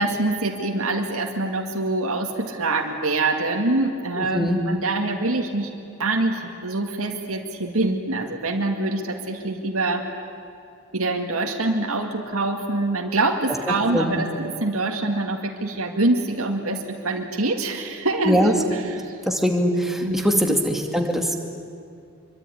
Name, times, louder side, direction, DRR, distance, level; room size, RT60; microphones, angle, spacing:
voice 1, 0.0-5.7 6.0-10.1 10.9-18.6 19.0-19.1 20.0-20.4, right 2 dB, 85° right, 2 dB, 2.2 m, -25 dB
voice 2, 4.2-4.6 13.7-14.2 18.3-18.5 19.3-21.3, equal, ahead, 3 dB, 2.3 m, -22 dB
25.5 x 23.5 x 9.9 m, 2.5 s
head